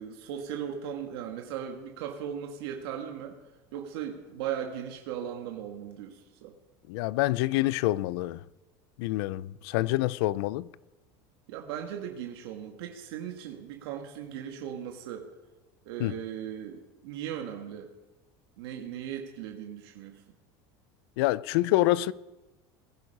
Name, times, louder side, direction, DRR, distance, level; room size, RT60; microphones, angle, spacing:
voice 1, 0.0-3.4 3.7-6.5 11.5-15.3 15.8-17.9 18.6-20.3, right 9 dB, 85° right, 1.7 m, -38 dB
voice 2, 6.9-8.4 9.0-10.7 16.0-16.1 21.2-22.1, left 17 dB, 80° left, 0.5 m, -26 dB
19.0 x 11.0 x 5.4 m
supercardioid pair, 130°, 13 cm